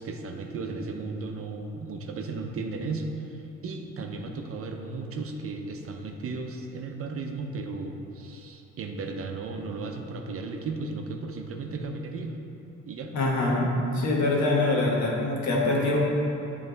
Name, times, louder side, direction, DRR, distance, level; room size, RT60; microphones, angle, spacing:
voice 1, 0.0-12.4 12.8-13.1, right 3 dB, 50° right, 3 dB, 0.6 m, -35 dB
voice 2, 13.1-13.7 13.9-16.0, left 2 dB, 70° left, -3 dB, 1.2 m, -24 dB
7.7 x 3.2 x 3.9 m, 2.9 s
cardioid pair, 90°, 30 cm